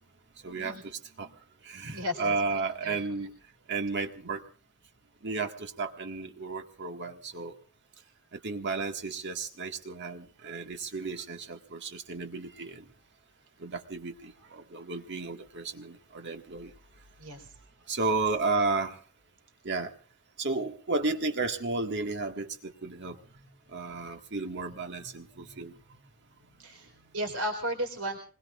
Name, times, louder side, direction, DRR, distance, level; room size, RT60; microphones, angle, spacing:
voice 1, 0.4-0.8 1.2-1.3 1.7-3.3 3.7-4.4 5.2-7.5 8.4-12.8 13.6-16.7 17.9-19.0 19.7-19.9 20.4-25.7, right 3 dB, 50° right, 5 dB, 1.8 m, -33 dB
voice 2, 1.8-2.3 2.8-3.0 17.2-17.5 17.9-18.0 26.6-28.2, equal, 85° right, 2 dB, 4.0 m, -34 dB
25.5 x 21.0 x 2.5 m, 0.40 s
head